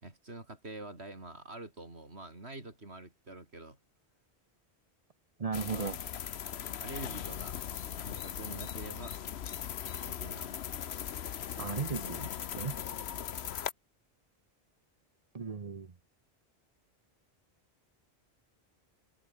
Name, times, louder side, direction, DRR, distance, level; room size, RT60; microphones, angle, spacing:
voice 1, 0.0-3.8 5.6-5.9 6.7-7.7 8.0-9.2 10.0-10.6, right 2 dB, 85° right, 5.0 m, -46 dB
voice 2, 5.4-6.0 11.6-12.3 12.6-12.8 15.3-15.9, right 5 dB, 35° right, 1.0 m, -36 dB
sound 1, 5.5-13.7, left 9 dB, 85° left, 1.1 m, -39 dB
omnidirectional pair, 1.1 m